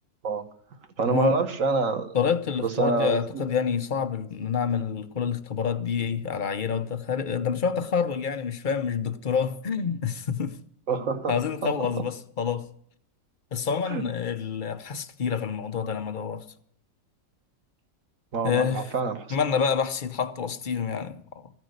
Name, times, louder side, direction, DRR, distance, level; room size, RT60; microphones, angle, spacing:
voice 1, 1.0-2.2 2.8-3.2 10.9-11.3 11.6-11.7 12.0-12.1 13.9-14.1 18.3-19.2, right 4 dB, 50° right, 1.5 m, -26 dB
voice 2, 2.1-10.6 10.9-12.7 13.5-16.5 18.4-18.9 19.3-21.5, left 6 dB, 50° left, 0.5 m, -28 dB
14.5 x 9.4 x 6.5 m
omnidirectional pair, 1.9 m